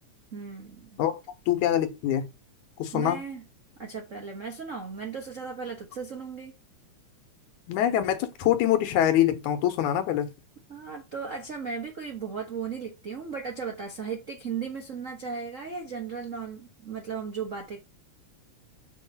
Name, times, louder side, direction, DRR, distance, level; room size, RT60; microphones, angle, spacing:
voice 1, 0.3-1.0 2.9-3.4 3.8-6.5 10.7-17.8, right 6 dB, 85° right, 0.7 m, -36 dB
voice 2, 1.5-2.3 2.8-3.2 7.7-10.3, left 11 dB, 80° left, 2.4 m, -24 dB
6.4 x 3.2 x 5.3 m
omnidirectional pair, 3.5 m